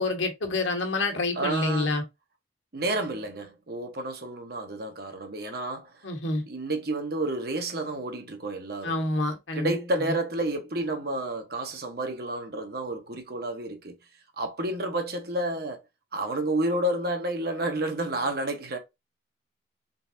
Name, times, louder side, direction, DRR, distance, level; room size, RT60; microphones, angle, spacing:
voice 1, 0.0-2.0 6.0-6.4 8.8-9.7, left 2 dB, 75° left, 1.3 m, -27 dB
voice 2, 1.3-2.0 2.7-5.9 6.4-9.0 9.5-14.0 14.4-15.8 16.1-18.8, right 1 dB, 55° right, 1.1 m, -30 dB
3.9 x 3.8 x 2.7 m
head